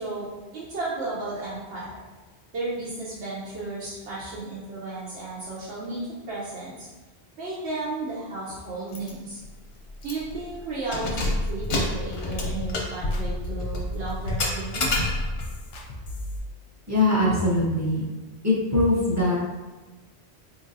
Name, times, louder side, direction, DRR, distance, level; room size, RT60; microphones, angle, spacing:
voice 1, 0.0-2.0 2.5-6.9 7.4-9.4 10.0-14.9, right 2 dB, 80° right, -8 dB, 1.1 m, -34 dB
Keys jangling, 8.9-9.1 9.5-9.6 10.0-10.4 10.8-15.5, left 2 dB, 85° left, 1.1 m, -28 dB
sound 1, 11.1-16.4, left 1 dB, 55° left, 0.6 m, -37 dB
voice 2, 16.9-18.0 18.4-19.4, left 2 dB, 20° right, -5 dB, 0.5 m, -22 dB
4.0 x 2.9 x 2.6 m, 1.2 s
omnidirectional pair, 1.1 m